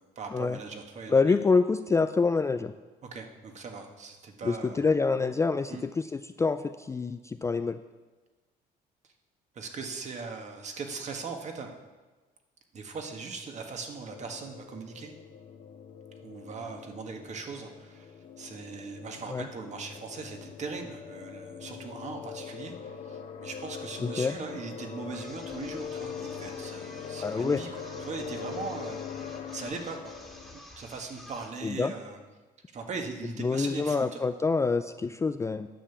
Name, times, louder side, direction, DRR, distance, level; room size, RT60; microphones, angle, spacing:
voice 1, 0.0-1.2 3.1-4.9 5.7-5.8 9.5-11.7 12.7-15.1 16.2-29.0 29.4-30.1 30.5-32.2 32.7-34.2, right 4 dB, 45° right, 4 dB, 1.6 m, -40 dB
voice 2, 1.1-2.7 4.4-7.8 19.3-19.5 24.0-24.4 27.2-27.6 31.6-31.9 33.4-35.7, left 4 dB, 15° left, 10 dB, 0.3 m, -26 dB
sound 1, 14.1-30.6, left 7 dB, 55° left, 1.0 m, -42 dB
sound 2, 25.1-31.6, equal, ahead, 1.9 m, -50 dB
10.5 x 6.8 x 6.9 m, 1.2 s
cardioid pair, 110°, 17 cm